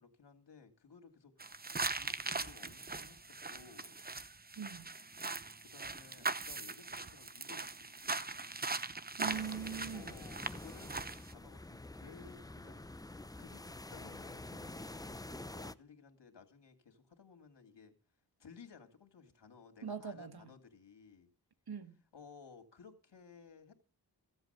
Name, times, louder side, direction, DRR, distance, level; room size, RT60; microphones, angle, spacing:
voice 1, 0.0-4.1 5.2-8.6 9.9-18.0 18.4-21.3 22.1-23.7, left 5 dB, 75° left, 2.5 m, -58 dB
sound 1, 1.4-11.3, right 3 dB, 20° right, 0.8 m, -41 dB
voice 2, 4.6-4.9 9.2-10.1 19.8-20.4 21.7-22.0, right 7 dB, 60° right, 1.6 m, -42 dB
sound 2, 9.2-15.7, left 2 dB, 10° left, 0.6 m, -48 dB
15.5 x 8.0 x 6.8 m
cardioid pair, 60°, 42 cm